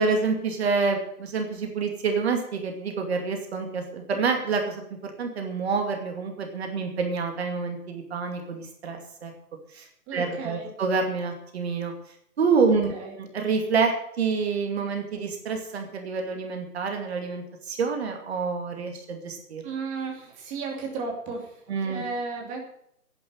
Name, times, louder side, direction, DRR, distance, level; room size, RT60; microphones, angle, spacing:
voice 1, 0.0-9.3 9.7-9.9 10.1-11.9 12.4-19.6 21.7-22.0, right 4 dB, 40° right, 4 dB, 2.5 m, -27 dB
voice 2, 10.1-10.7 12.7-13.2 19.6-22.6, right 4 dB, 15° right, 1 dB, 2.6 m, -34 dB
11.0 x 9.3 x 9.5 m, 0.74 s
figure-of-eight pair, 140°, 46 cm